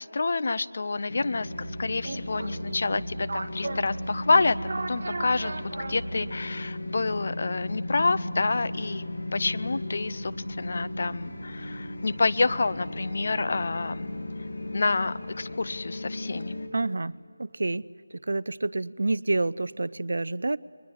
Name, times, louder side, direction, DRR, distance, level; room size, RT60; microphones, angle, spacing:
voice 1, 0.0-1.5 1.8-4.6 4.9-5.5 5.9-9.0 9.3-10.3 10.6-14.1 14.7-16.6, left 3 dB, 45° left, 16 dB, 0.6 m, -28 dB
sound 1, 1.1-16.7, left 1 dB, 70° left, 2.6 m, -36 dB
sound 2, 1.4-6.5, right 3 dB, 45° right, 1.9 m, -36 dB
voice 2, 16.7-17.1 17.4-17.8 18.3-20.6, right 2 dB, 65° right, 19 dB, 0.5 m, -28 dB
23.0 x 20.5 x 9.4 m, 2.5 s
figure-of-eight pair, 175°, 0 cm